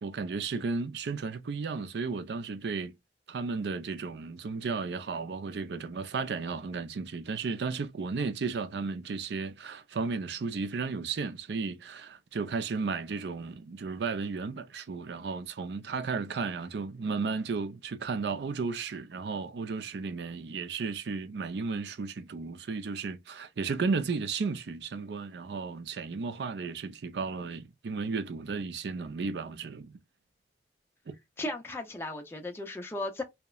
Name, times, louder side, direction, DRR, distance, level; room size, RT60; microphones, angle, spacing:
voice 1, 0.0-2.9 3.3-29.9 31.1-31.2, right 4 dB, 70° right, 0.4 m, -34 dB
voice 2, 31.4-33.2, left 2 dB, 15° left, 0.4 m, -36 dB
2.8 x 2.1 x 2.2 m
head